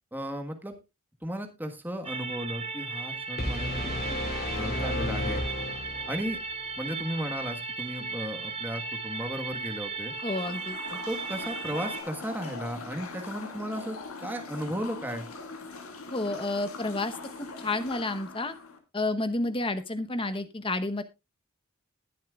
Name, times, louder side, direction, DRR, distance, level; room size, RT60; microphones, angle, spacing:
voice 1, 0.1-0.7 1.2-4.2 4.5-5.5 6.1-6.4 6.8-10.1 10.9-15.3, equal, 10° right, 5 dB, 1.4 m, -35 dB
sound 1, 2.0-12.0, right 4 dB, 30° right, 1.9 m, -36 dB
sound 2, 3.4-6.4, left 1 dB, 45° left, 3.2 m, -32 dB
sound 3, 10.1-18.8, left 3 dB, 80° left, 2.2 m, -42 dB
voice 2, 10.2-10.8 16.1-18.5 18.9-21.0, left 2 dB, 25° left, 9 dB, 1.0 m, -30 dB
20.5 x 7.3 x 2.4 m, 0.25 s
head